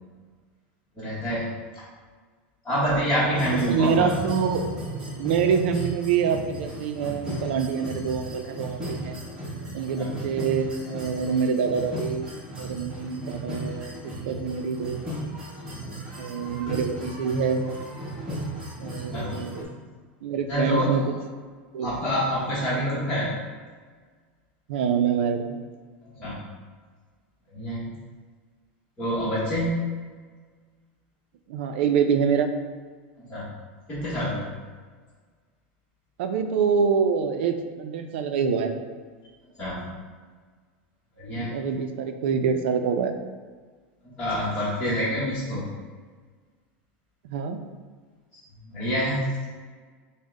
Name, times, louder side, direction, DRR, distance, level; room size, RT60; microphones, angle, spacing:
voice 1, 1.0-1.5 2.6-4.3 10.0-10.1 15.8-15.9 19.0-19.3 20.5-21.0 21.8-23.3 26.1-26.4 27.5-27.9 29.0-29.9 33.2-33.5 33.9-34.5 39.6-39.9 41.2-41.5 44.0-45.7 48.6-49.3, equal, 15° left, -12 dB, 1.0 m, -27 dB
sound 1, 3.3-19.6, right 1 dB, 10° right, 1.1 m, -35 dB
voice 2, 3.5-4.7 5.2-9.2 9.7-12.3 12.5-15.0 16.2-17.7 18.8-19.7 20.2-21.0 21.7-21.9 22.9-23.0 24.7-25.6 31.5-32.5 36.2-38.7 41.4-43.2 47.2-47.6, right 6 dB, 70° right, 7 dB, 0.4 m, -26 dB
5.3 x 2.1 x 3.6 m, 1.5 s
supercardioid pair, 155°, 6 cm